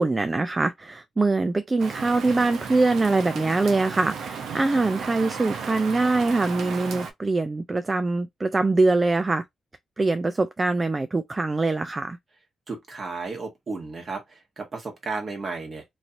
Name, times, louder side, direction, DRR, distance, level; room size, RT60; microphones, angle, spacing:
voice 1, 0.0-9.4 10.0-12.2, right 3 dB, 25° right, 0.3 m, -23 dB
Rain, 1.8-7.1, right 6 dB, 75° right, 0.8 m, -34 dB
voice 2, 12.7-15.8, right 3 dB, 45° right, 1.4 m, -33 dB
3.1 x 2.7 x 2.5 m
cardioid pair, 80°, 0 cm